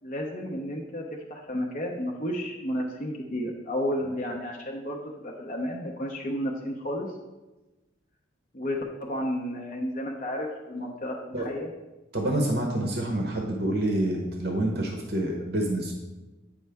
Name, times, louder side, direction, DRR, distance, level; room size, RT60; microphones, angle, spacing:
voice 1, 0.0-1.0 1.3-7.1 8.5-11.7, equal, 40° left, -1 dB, 0.7 m, -32 dB
voice 2, 12.1-15.9, right 1 dB, 50° right, 1 dB, 0.9 m, -27 dB
8.6 x 5.3 x 3.4 m, 1.1 s
head